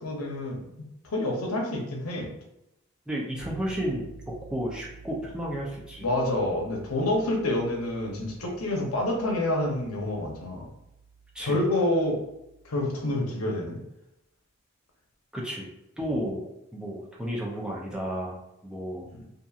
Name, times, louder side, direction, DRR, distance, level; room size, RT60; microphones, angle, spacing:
voice 1, 0.0-0.6 1.1-2.3 6.0-10.7 11.4-12.2 12.6-13.8 19.1-19.2, left 1 dB, 90° left, 0 dB, 0.7 m, -27 dB
voice 2, 3.1-4.1 4.5-6.1 11.3-11.6 15.3-15.7 16.0-16.5 16.7-18.4 18.6-19.1, equal, 5° right, -4 dB, 0.5 m, -32 dB
sound 1, 3.4-13.2, right 4 dB, 45° left, 0.9 m, -50 dB
2.8 x 2.6 x 2.4 m, 0.86 s
head